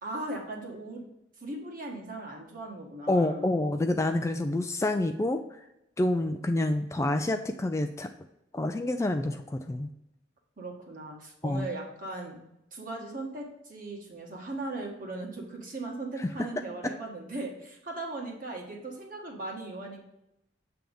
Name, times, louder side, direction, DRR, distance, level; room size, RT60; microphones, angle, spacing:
voice 1, 0.0-1.0 1.4-3.5 10.6-12.4 12.7-20.0, right 2 dB, 50° right, -1 dB, 1.7 m, -38 dB
voice 2, 3.1-5.4 6.0-8.1 8.5-9.9 11.4-11.7 16.2-16.5 16.8-16.9, left 1 dB, 15° left, 6 dB, 0.3 m, -28 dB
7.6 x 3.5 x 5.3 m, 0.85 s
head